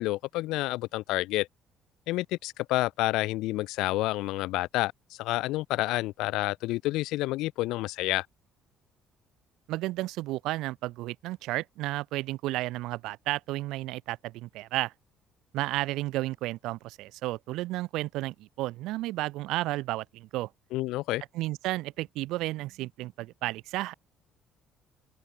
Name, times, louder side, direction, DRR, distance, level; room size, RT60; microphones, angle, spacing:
voice 1, 0.0-1.5 2.1-8.3 20.7-21.2, left 18 dB, 80° left, 1.2 m, -29 dB
voice 2, 9.7-14.9 15.5-20.5 21.3-23.9, right 17 dB, 75° right, 1.5 m, -32 dB
open air
cardioid pair, 175°, 0 cm